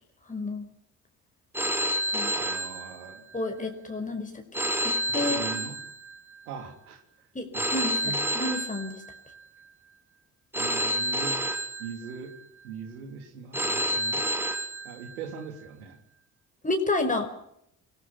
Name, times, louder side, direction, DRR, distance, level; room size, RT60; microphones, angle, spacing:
voice 1, 0.3-0.7 2.1-2.3 3.3-4.4 4.8-5.4 7.4-8.0 8.4-9.0 16.6-17.3, left 2 dB, 15° left, 4 dB, 5.1 m, -30 dB
Telephone, 1.5-3.4 4.5-6.4 7.5-9.4 10.5-12.4 13.5-15.4, equal, 5° right, 3.3 m, -29 dB
voice 2, 2.3-3.2 5.1-5.8 6.4-7.3 7.5-7.7 8.0-8.2 10.5-11.4 11.8-12.3 12.6-14.3 14.8-16.0, right 6 dB, 75° right, 6 dB, 3.5 m, -40 dB
28.5 x 20.5 x 5.9 m, 0.73 s
figure-of-eight pair, 45°, 44 cm